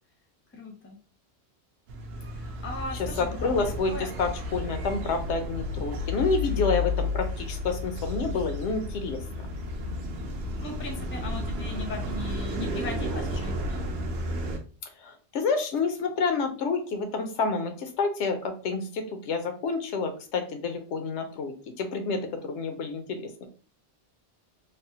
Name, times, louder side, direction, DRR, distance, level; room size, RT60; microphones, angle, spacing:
voice 1, 0.5-1.0 2.3-3.6 3.9-4.1 10.6-13.9, left 3 dB, 15° left, 2 dB, 0.5 m, -38 dB
sound 1, 1.9-14.6, left 2 dB, 70° right, 0.8 m, -32 dB
voice 2, 3.0-9.5 15.0-23.5, left 4 dB, 80° left, 7 dB, 0.9 m, -29 dB
3.3 x 2.0 x 2.7 m, 0.38 s
omnidirectional pair, 1.2 m